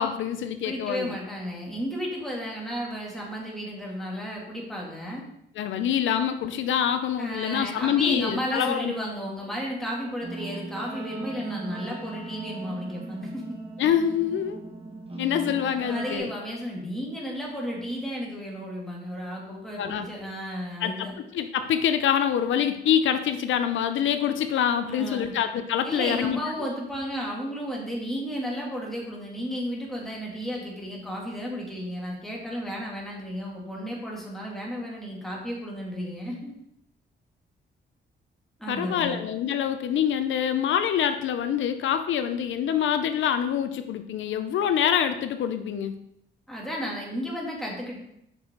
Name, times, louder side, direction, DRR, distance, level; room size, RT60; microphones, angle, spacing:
voice 1, 0.0-1.1 5.6-8.9 13.8-14.6 15.2-16.3 19.8-20.1 20.8-21.1 21.3-26.4 38.7-46.0, left 9 dB, 85° left, 9 dB, 0.6 m, -25 dB
voice 2, 0.6-5.2 7.2-13.4 15.9-21.1 24.8-25.3 25.8-36.5 38.6-39.2 46.5-48.0, equal, ahead, -3 dB, 2.7 m, -33 dB
Guitar, 10.2-16.2, right 3 dB, 30° right, 1.4 m, -38 dB
7.5 x 6.3 x 3.9 m, 0.77 s
cardioid pair, 110°, 19 cm